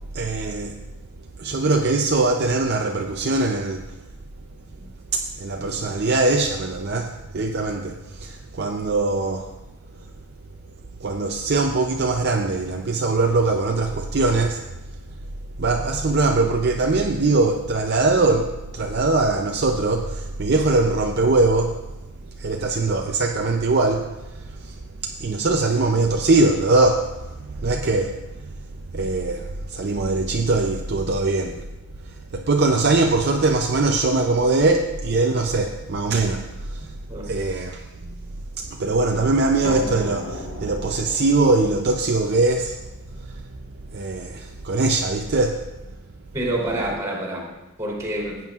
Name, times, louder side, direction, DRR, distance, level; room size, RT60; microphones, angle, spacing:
voice 1, 0.1-0.8 1.4-3.8 5.1-9.5 11.0-14.6 15.6-21.8 22.4-24.1 24.6-24.8 25.0-28.5 28.9-31.6 32.3-36.9 37.2-37.8 38.6-42.8 43.9-45.6, right 3 dB, 45° right, 0.5 m, -21 dB
sound 1, 39.6-45.2, left 1 dB, 65° left, 1.6 m, -37 dB
voice 2, 46.3-48.4, right 1 dB, 15° right, 3.1 m, -27 dB
16.0 x 8.9 x 2.4 m
head